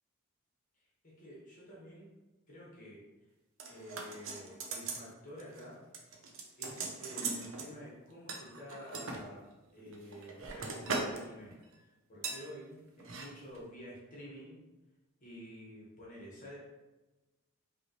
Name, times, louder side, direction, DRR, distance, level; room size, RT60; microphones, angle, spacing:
voice 1, 1.0-2.1 2.5-3.0 3.7-5.8 6.6-14.6 15.2-16.6, equal, 35° left, -6 dB, 1.4 m, -49 dB
sound 1, 3.6-5.1 5.4-5.6 5.9-7.7 8.3-9.2 9.8-11.2 11.5-11.7 12.2-12.4 13.0-13.3 13.5-13.6, right 4 dB, 60° right, 0.7 m, -39 dB
5.3 x 2.9 x 3.0 m, 1.1 s
head